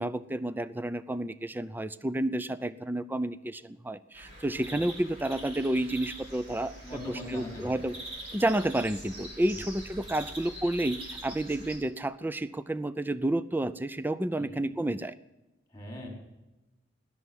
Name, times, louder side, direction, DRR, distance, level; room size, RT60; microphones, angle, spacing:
voice 1, 0.0-6.7 7.3-7.9 8.3-15.1, right 1 dB, 10° right, 14 dB, 0.5 m, -30 dB
sound 1, 4.1-11.8, right 1 dB, 35° right, 5.8 m, -44 dB
voice 2, 6.8-7.8 9.5-9.7 14.3-14.6 15.7-16.1, left 1 dB, 15° left, 0 dB, 4.7 m, -41 dB
19.0 x 7.1 x 9.6 m, 1.0 s
head